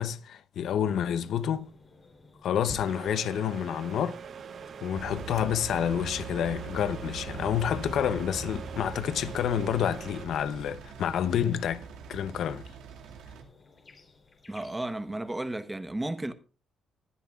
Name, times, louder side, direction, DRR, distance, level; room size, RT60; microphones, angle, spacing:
voice 1, 0.0-1.7 2.4-4.2 4.8-11.8 12.1-12.7, left 9 dB, 70° left, 0.7 m, -29 dB
sound 1, 1.1-15.5, left 3 dB, 35° left, 3.4 m, -59 dB
sound 2, 2.8-10.3, right 7 dB, 55° right, 0.9 m, -44 dB
Engine, 4.9-13.4, right 5 dB, 90° right, 2.1 m, -42 dB
voice 2, 14.5-16.3, right 1 dB, 15° right, 1.1 m, -33 dB
20.5 x 11.5 x 2.4 m
cardioid pair, 90°, 0 cm